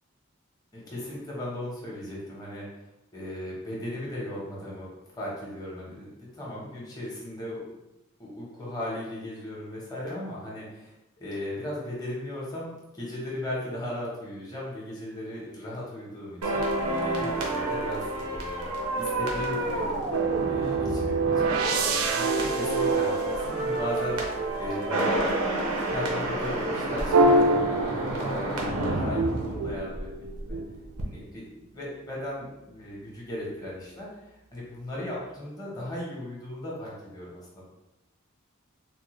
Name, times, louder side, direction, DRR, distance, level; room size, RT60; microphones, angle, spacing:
voice 1, 0.7-2.7 3.1-4.9 5.1-7.6 8.2-19.9 20.4-25.3 25.9-30.6 31.0-37.7, left 1 dB, 15° left, -5 dB, 0.9 m, -37 dB
sound 1, 16.4-30.6 30.8-31.0, right 1 dB, 90° right, 0.8 m, -30 dB
sound 2, 20.1-24.3 27.1-28.6 29.2-30.9, right 3 dB, 70° right, 0.4 m, -26 dB
3.8 x 2.1 x 3.0 m, 0.93 s
head